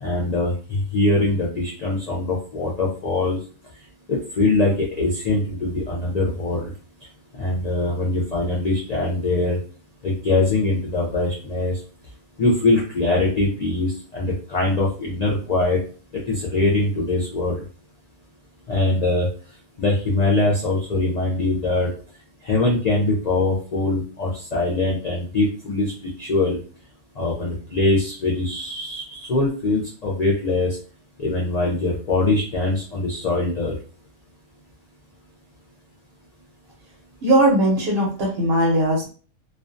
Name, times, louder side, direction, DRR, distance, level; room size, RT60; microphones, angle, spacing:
voice 1, 0.0-3.4 4.1-6.7 7.4-9.6 10.0-11.7 12.4-15.8 16.3-17.6 18.7-19.3 19.8-21.9 22.4-25.9 26.2-26.6 27.2-30.7 31.2-33.8, left 2 dB, 65° left, -4 dB, 0.4 m, -22 dB
voice 2, 37.2-39.1, right 1 dB, 55° right, -3 dB, 0.8 m, -19 dB
2.4 x 2.2 x 2.5 m, 0.38 s
omnidirectional pair, 1.4 m